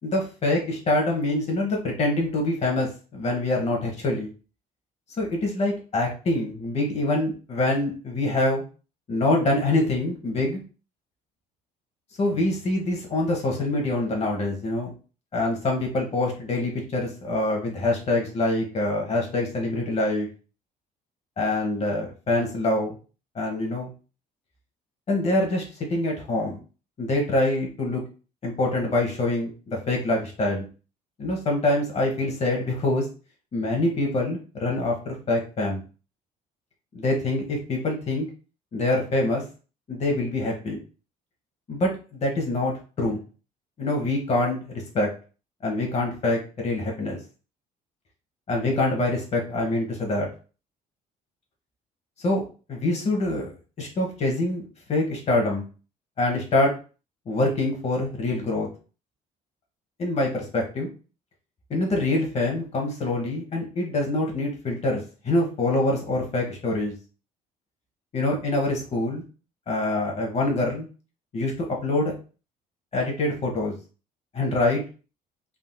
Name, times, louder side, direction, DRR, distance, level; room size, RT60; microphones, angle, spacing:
voice 1, 0.0-4.3 5.2-8.6 9.1-10.6 12.2-14.9 15.3-20.3 21.4-22.9 23.3-23.9 25.1-25.6 25.9-26.6 27.0-28.0 28.4-30.6 31.2-33.1 33.5-35.8 36.9-38.3 38.7-39.4 39.9-40.8 41.7-43.2 43.8-45.1 45.6-47.2 48.5-50.3 52.2-52.4 52.7-54.6 54.9-55.6 56.2-56.7 57.3-58.7 60.0-60.9 61.7-66.9 68.1-69.2 69.7-70.9 71.3-71.5 71.8-72.1 72.9-73.7 74.3-74.8, left 2 dB, 40° left, 0 dB, 0.9 m, -25 dB
3.5 x 2.6 x 2.2 m, 0.35 s
cardioid pair, 110°, 17 cm